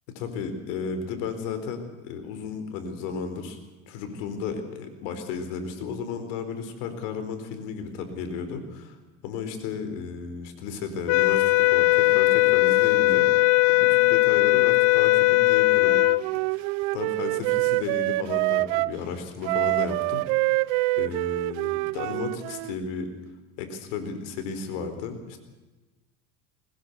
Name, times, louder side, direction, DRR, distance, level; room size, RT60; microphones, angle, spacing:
voice 1, 0.1-3.6 3.9-9.0 9.2-13.3 13.7-16.0 16.5-20.7 21.0-23.1 23.6-25.4, left 5 dB, 80° left, 8 dB, 4.5 m, -34 dB
sound 1, 11.1-16.2, left 21 dB, 60° left, 0.7 m, -19 dB
Wind instrument woodwind instrument, 15.8-19.0 19.4-22.8, right 22 dB, 75° right, 0.7 m, -26 dB
22.0 x 20.0 x 8.2 m, 1.2 s
supercardioid pair, 120°, 36 cm